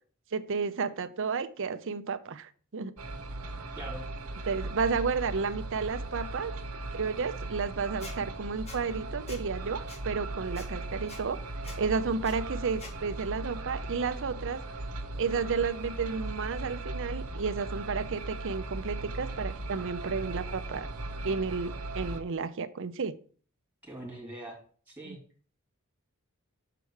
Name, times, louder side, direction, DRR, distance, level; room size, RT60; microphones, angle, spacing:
voice 1, 0.3-2.9 4.5-6.5 6.9-11.4 11.8-14.6 15.2-20.9 21.2-23.1 25.1-25.2, right 5 dB, 60° right, 12 dB, 0.6 m, -32 dB
sound 1, 3.0-22.2, right 2 dB, 85° right, 1.1 m, -38 dB
Squeak, 8.0-8.1 8.7-8.8 9.3-9.4 9.9-10.0 10.5-10.7 11.1-11.2 11.6-11.8 12.2-12.3 12.8-12.9, left 3 dB, 30° left, 1.6 m, -45 dB
voice 2, 23.8-24.6 24.9-25.2, right 1 dB, 10° right, -1 dB, 2.9 m, -42 dB
6.8 x 4.7 x 6.3 m, 0.43 s
head